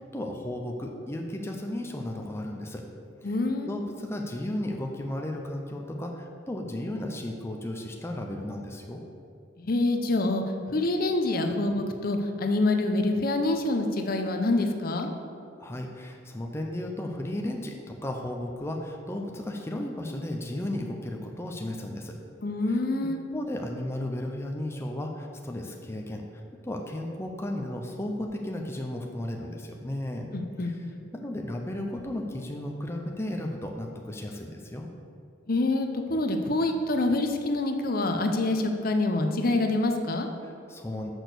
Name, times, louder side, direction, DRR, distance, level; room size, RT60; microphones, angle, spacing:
voice 1, 0.0-2.8 3.2-3.4 3.6-9.0 15.6-22.2 22.7-30.3 30.6-30.8 31.1-34.9 40.4-41.1, left 1 dB, 15° left, 2 dB, 0.6 m, -34 dB
voice 2, 3.2-3.7 9.6-15.1 22.4-23.2 30.3-31.0 35.5-40.3, left 2 dB, 50° left, 5 dB, 0.7 m, -26 dB
6.3 x 6.1 x 6.7 m, 2.5 s
head